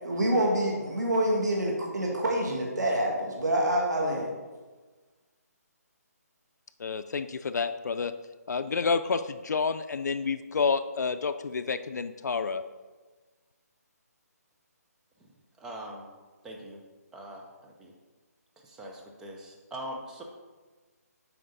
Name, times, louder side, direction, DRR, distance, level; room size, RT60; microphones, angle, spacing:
voice 1, 0.0-4.3, right 1 dB, 90° right, -1 dB, 1.8 m, -27 dB
voice 2, 6.8-8.1 8.5-12.6, left 5 dB, 85° left, 10 dB, 0.4 m, -29 dB
voice 3, 15.6-16.1 16.4-16.8 17.1-17.9 18.6-20.2, right 1 dB, 5° right, 0 dB, 0.4 m, -42 dB
7.6 x 4.8 x 3.9 m, 1.3 s
hypercardioid pair, 165°, 9 cm